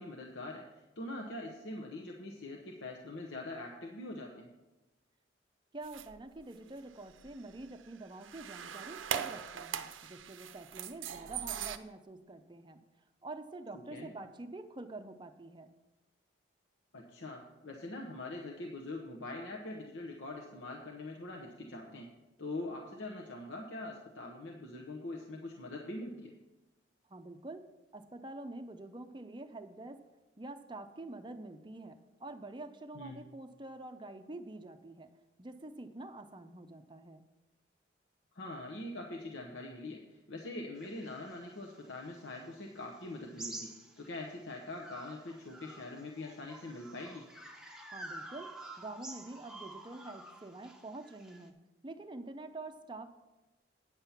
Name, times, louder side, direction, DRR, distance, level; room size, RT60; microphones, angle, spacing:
voice 1, 0.0-4.5 13.9-14.1 16.9-22.1 22.4-26.3 32.9-33.2 38.3-43.7 44.0-47.2, left 2 dB, 75° left, 0 dB, 1.0 m, -43 dB
voice 2, 5.7-12.8 13.2-15.7 27.1-27.6 27.9-30.0 30.4-35.1 35.4-37.2 47.9-51.6 51.8-53.1, right 2 dB, 25° right, 8 dB, 0.5 m, -46 dB
sound 1, 5.8-6.4 7.1-11.8, right 9 dB, 90° right, 0.6 m, -40 dB
sound 2, 40.8-44.3 44.8-51.5, right 2 dB, 5° right, 0.8 m, -49 dB
9.7 x 7.4 x 5.7 m, 1.1 s
head